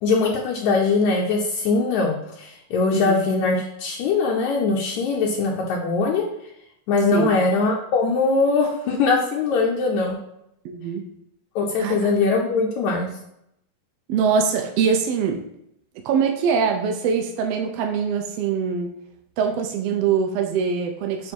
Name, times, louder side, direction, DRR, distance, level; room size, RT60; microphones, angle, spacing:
voice 1, 0.0-6.2 6.9-10.2 11.6-13.1, left 4 dB, 75° left, 0 dB, 2.0 m, -21 dB
voice 2, 10.6-11.0 11.8-12.1 14.1-15.4 16.0-18.9 19.4-21.3, right 6 dB, 80° right, 3 dB, 1.4 m, -23 dB
8.4 x 3.5 x 4.5 m, 0.77 s
omnidirectional pair, 3.6 m